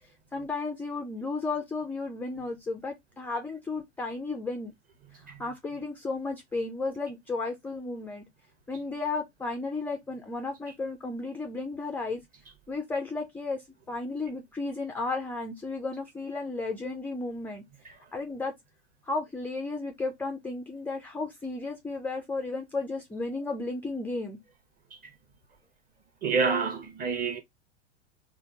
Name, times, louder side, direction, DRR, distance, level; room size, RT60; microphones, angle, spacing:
voice 1, 0.3-4.7 5.4-8.3 8.7-12.2 12.7-17.6 18.1-18.5 19.1-24.4, left 3 dB, 5° left, 0.4 m, -33 dB
voice 2, 26.2-27.4, right 5 dB, 25° right, 1.0 m, -27 dB
3.4 x 2.0 x 4.0 m
hypercardioid pair, 110°, 34 cm